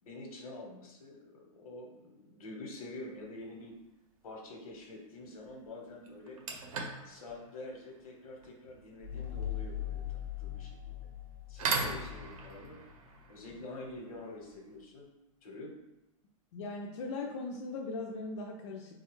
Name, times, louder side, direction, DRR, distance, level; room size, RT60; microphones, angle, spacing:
voice 1, 0.0-3.7 4.2-6.4 7.0-10.9 11.5-12.8 13.3-15.1 15.4-15.7, left 2 dB, 85° left, 0 dB, 1.0 m, -47 dB
sound 1, 3.1-3.4 5.4-5.5 6.0-14.8, right 4 dB, 75° right, 0.7 m, -41 dB
sound 2, 9.0-12.4, left 10 dB, 25° right, 0.4 m, -40 dB
voice 2, 16.5-19.0, left 3 dB, 55° left, 0 dB, 0.4 m, -39 dB
4.0 x 2.3 x 3.0 m, 0.93 s
supercardioid pair, 175°, 18 cm